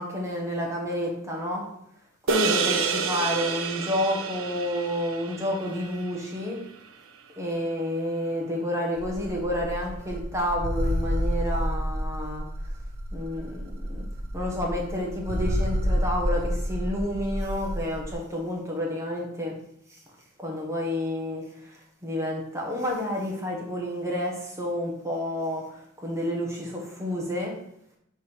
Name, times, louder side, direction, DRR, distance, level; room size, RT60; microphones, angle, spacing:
voice 1, 0.0-1.7 2.3-6.6 7.4-12.5 13.1-14.0 14.3-19.6 19.9-20.0 20.4-27.5, left 1 dB, 15° right, -1 dB, 1.5 m, -30 dB
sound 1, 2.3-6.9, right 5 dB, 80° right, 0.8 m, -29 dB
sound 2, 9.0-18.1, equal, 50° right, 0.9 m, -29 dB
9.2 x 3.7 x 4.8 m, 0.74 s
head